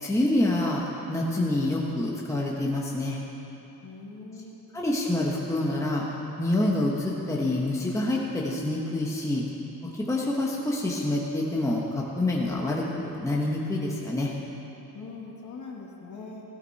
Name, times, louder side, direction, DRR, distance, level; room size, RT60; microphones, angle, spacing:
voice 1, 0.0-3.2 4.7-6.0 6.4-9.4 9.9-14.3, left 1 dB, 10° left, -3 dB, 1.3 m, -27 dB
voice 2, 3.8-4.6 14.9-16.4, left 4 dB, 50° left, -1 dB, 2.3 m, -42 dB
17.0 x 16.0 x 4.3 m, 2.9 s
cardioid pair, 165°, 38 cm